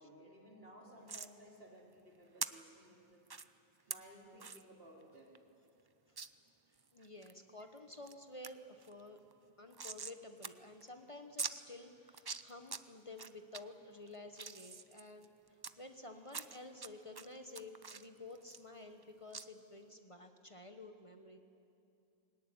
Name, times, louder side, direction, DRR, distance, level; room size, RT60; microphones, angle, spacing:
voice 1, 0.0-3.3 3.9-5.4, right 1 dB, 70° right, -2 dB, 3.9 m, -57 dB
sound 1, 1.1-1.3 2.4-2.5 3.3-3.5 3.9-4.0 4.4-4.6 5.0-5.1 5.4-5.5 6.2-6.3 6.8-7.3 7.8-8.1 8.4-8.5 8.8-10.2 10.4-10.5 10.8-10.9 11.4-11.5 12.1-12.8 13.2-13.6 14.1-15.7 16.3-16.9 17.2-19.0 19.3-19.5, right 5 dB, 30° right, 0.5 m, -43 dB
voice 2, 6.9-9.2 9.6-15.3 15.8-21.4, left 2 dB, 30° left, 6 dB, 1.2 m, -52 dB
22.0 x 17.5 x 9.8 m, 2.7 s
omnidirectional pair, 1.0 m